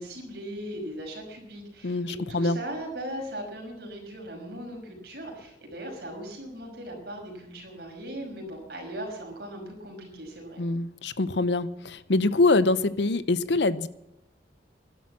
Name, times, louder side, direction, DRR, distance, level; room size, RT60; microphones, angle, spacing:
voice 1, 0.0-10.6, right 1 dB, 60° right, 5.6 m, -38 dB
voice 2, 1.8-2.6 10.6-13.9, left 2 dB, 75° left, 0.8 m, -24 dB
12.5 x 12.0 x 7.3 m
head